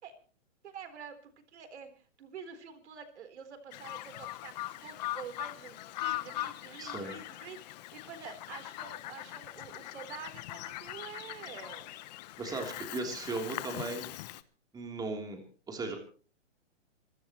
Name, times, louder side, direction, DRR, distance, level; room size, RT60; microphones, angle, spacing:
voice 1, 0.6-7.6 7.9-11.9, right 6 dB, 65° right, 8 dB, 4.0 m, -47 dB
Bird vocalization bird call bird song, 3.7-14.4, left 16 dB, 35° left, 1.0 m, -41 dB
voice 2, 6.8-7.1 12.4-14.1 14.7-15.4 15.7-16.0, right 3 dB, 10° right, 2 dB, 3.4 m, -37 dB
27.0 x 15.0 x 3.1 m, 0.40 s
hypercardioid pair, 145°, 37 cm